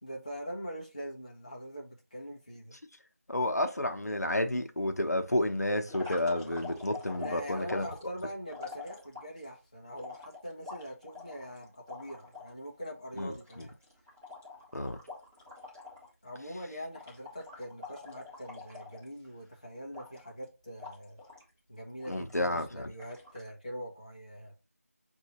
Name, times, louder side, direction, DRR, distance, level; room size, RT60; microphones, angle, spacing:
voice 1, 0.0-2.8 7.2-13.8 16.2-21.2 21.7-24.5, equal, 25° left, 0.7 m, -43 dB
voice 2, 3.3-7.9 13.2-13.3 14.7-15.0 22.1-22.7, left 1 dB, 80° left, 0.9 m, -30 dB
sound 1, 5.9-9.4 10.0-12.5 12.8-12.9 13.2-16.1 16.4-16.6 16.9-19.4 19.9-20.4 20.8-21.5 22.0-22.6 23.0-23.5, left 4 dB, 10° right, 1.0 m, -46 dB
6.5 x 2.6 x 2.9 m
figure-of-eight pair, 175°, 9 cm